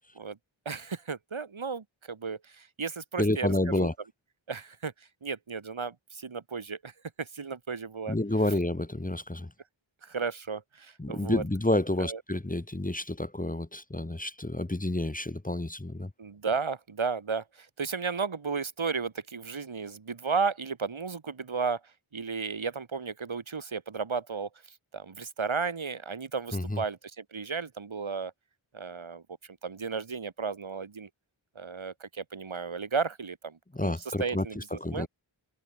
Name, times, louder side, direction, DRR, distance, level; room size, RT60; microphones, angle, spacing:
voice 1, 0.7-3.9 4.5-4.9 5.2-6.9 7.2-8.2 10.0-11.4 12.0-12.2 16.2-21.8 22.1-24.5 24.9-28.3 28.7-29.2 29.6-31.1 31.6-35.1, right 5 dB, 70° right, 3.3 m, -34 dB
voice 2, 3.2-3.9 8.1-9.5 11.0-16.1 26.5-26.8 33.7-35.1, left 1 dB, 15° left, 2.0 m, -29 dB
cardioid pair, 45°, 49 cm